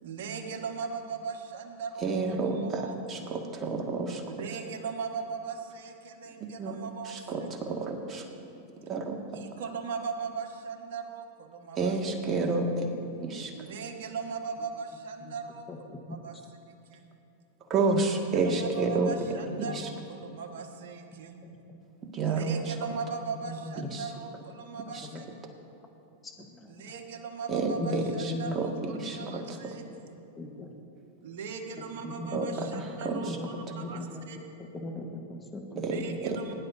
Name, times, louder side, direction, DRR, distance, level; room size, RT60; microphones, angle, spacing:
voice 1, 0.0-3.4 4.3-7.6 9.3-12.4 13.5-16.4 16.7-17.1 17.9-18.0 18.3-21.4 22.2-25.2 26.7-30.1 31.2-34.4 35.9-36.5, right 5 dB, 65° right, 3 dB, 1.5 m, -39 dB
voice 2, 2.0-4.2 6.6-6.8 7.1-8.2 8.9-9.2 11.8-12.9 13.2-13.5 17.7-19.1 19.7-19.9 22.1-22.6 23.9-24.0 24.9-25.1 27.5-28.0 28.6-28.7 29.0-29.4 32.0-32.5 33.0-33.4 35.8-36.0 36.2-36.4, right 4 dB, 30° right, 1 dB, 1.9 m, -29 dB
voice 3, 15.7-16.2 19.5-19.8 21.7-21.8 23.4-23.9 25.1-25.2 26.2-26.9 27.8-28.9 29.2-30.0 30.4-30.7 32.0-34.2 34.6-36.2, left 2 dB, 15° left, 2 dB, 1.3 m, -39 dB
21.5 x 11.0 x 2.7 m, 2.7 s
hypercardioid pair, 105°, 0 cm